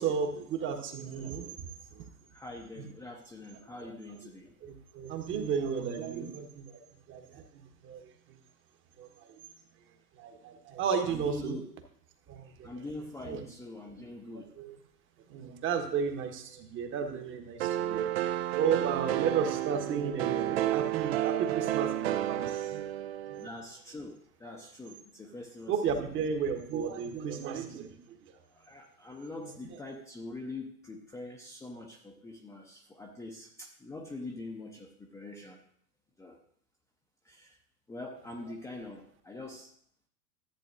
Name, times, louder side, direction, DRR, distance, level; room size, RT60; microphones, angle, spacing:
voice 1, 0.0-2.1 3.8-3.9 4.6-8.1 9.0-9.4 10.2-11.6 12.3-12.8 13.2-13.4 14.6-14.8 15.3-22.9 23.3-23.4 25.7-28.4 29.4-29.5, right 6 dB, 25° right, 6 dB, 1.3 m, -34 dB
voice 2, 2.3-4.5 11.1-11.6 12.6-14.6 23.4-26.1 28.5-35.6 36.2-36.4 37.2-37.6 37.9-39.7, left 2 dB, 5° left, 0 dB, 0.8 m, -44 dB
sound 1, 17.6-23.5, right 13 dB, 40° right, 0.6 m, -31 dB
14.0 x 8.6 x 2.6 m, 0.63 s
figure-of-eight pair, 100°, 48 cm